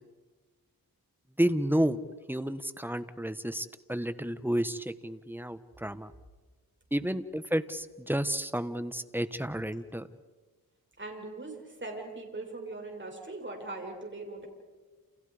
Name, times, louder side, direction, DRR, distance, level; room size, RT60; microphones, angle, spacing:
voice 1, 1.4-6.1 6.9-10.1, right 1 dB, 5° right, 11 dB, 1.2 m, -31 dB
voice 2, 11.0-14.5, right 2 dB, 30° right, 1 dB, 6.7 m, -40 dB
29.5 x 29.0 x 5.1 m, 1.3 s
wide cardioid pair, 80°, 36 cm